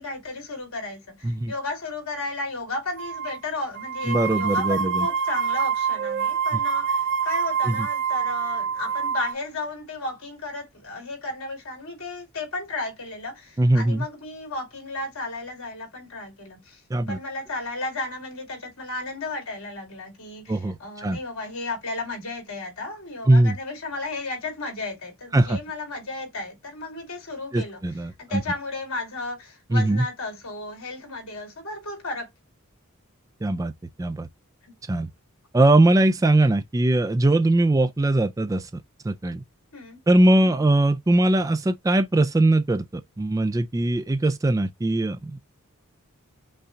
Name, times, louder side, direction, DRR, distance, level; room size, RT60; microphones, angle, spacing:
voice 1, 0.0-16.8 17.1-27.8 28.2-32.3 34.7-34.8 39.7-40.0 40.4-40.7, left 2 dB, 65° left, 2.7 m, -34 dB
sound 1, 3.0-3.4 3.7-9.3, right 7 dB, 55° right, 0.8 m, -26 dB
voice 2, 4.0-5.1 7.6-7.9 13.6-14.1 16.9-17.2 20.5-21.2 23.3-23.6 25.3-25.6 27.5-28.4 29.7-30.1 33.4-33.7 34.0-34.3 34.9-35.1 35.5-39.4 40.1-45.5, right 2 dB, 15° right, 0.3 m, -21 dB
5.5 x 2.3 x 3.8 m
head